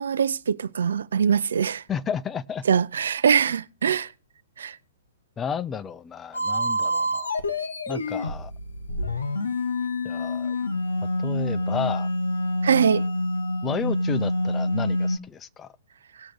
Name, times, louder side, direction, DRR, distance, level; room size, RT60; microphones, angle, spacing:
voice 1, 0.0-1.8 2.7-4.1 4.6-4.8 12.6-13.0, right 7 dB, 65° right, 0.5 m, -22 dB
voice 2, 1.9-2.6 5.4-7.3 7.9-8.5 10.0-10.6 11.2-12.1 13.6-15.7, left 7 dB, 20° left, 0.5 m, -32 dB
sound 1, 6.3-15.2, left 1 dB, 80° left, 1.3 m, -27 dB
18.0 x 6.2 x 3.4 m
figure-of-eight pair, 115°, 0 cm